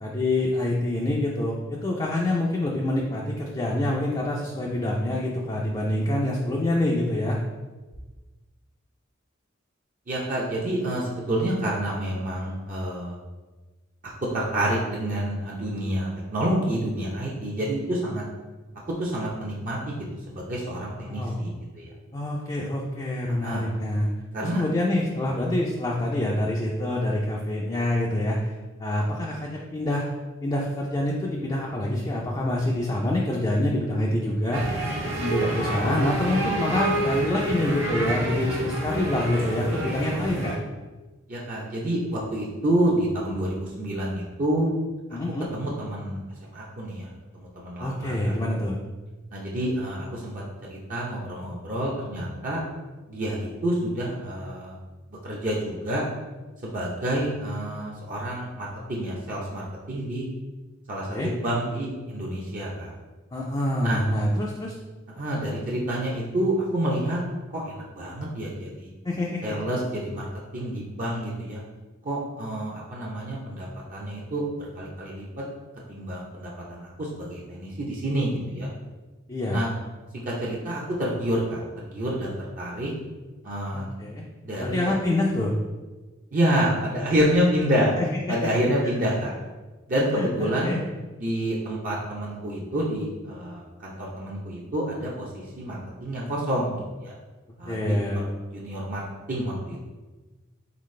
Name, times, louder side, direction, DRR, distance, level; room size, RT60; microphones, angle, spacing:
voice 1, 0.0-7.4 21.0-21.4 22.1-24.1 24.4-28.5 28.8-30.1 30.4-34.7 35.2-40.5 45.1-45.5 47.8-48.8 61.1-61.3 63.3-64.7 69.0-69.6 79.3-79.6 83.7-84.2 84.6-85.6 88.4-88.5 90.1-90.8 97.7-98.2, left 1 dB, 20° left, -3 dB, 0.4 m, -26 dB
voice 2, 10.1-13.2 14.3-18.2 19.0-20.0 20.3-21.9 23.4-23.7 24.3-24.6 41.3-44.7 45.5-48.3 49.3-50.4 50.7-52.6 53.1-54.8 55.2-56.0 56.6-60.3 60.9-62.9 63.8-64.0 65.1-67.2 67.5-68.9 69.4-70.3 70.5-71.6 72.0-75.4 75.9-78.7 79.5-79.7 80.1-82.9 83.4-83.9 84.4-84.8 86.3-87.9 88.3-89.3 89.9-90.7 91.2-97.1 97.6-97.8 98.2-99.8, right 1 dB, 45° right, -4 dB, 0.6 m, -28 dB
sound 1, 34.5-40.6, right 1 dB, 75° right, 1.3 m, -28 dB
4.0 x 3.9 x 3.2 m, 1.2 s
head